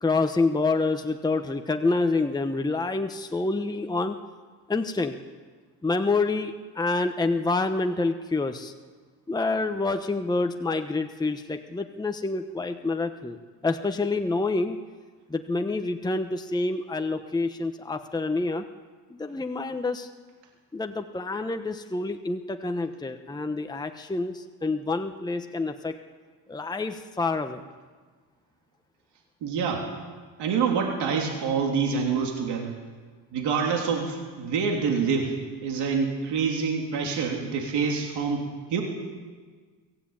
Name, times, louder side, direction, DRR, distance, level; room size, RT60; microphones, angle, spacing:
voice 1, 0.0-4.1 4.7-5.2 5.8-8.7 9.3-13.4 13.6-14.8 15.3-18.6 19.1-20.1 20.7-25.9 26.5-27.6, left 3 dB, 10° left, 6 dB, 1.1 m, -27 dB
voice 2, 29.4-29.9 30.4-32.8 33.3-38.8, right 5 dB, 80° right, 1 dB, 3.4 m, -26 dB
24.0 x 15.5 x 8.9 m, 1.5 s
cardioid pair, 120°, 40 cm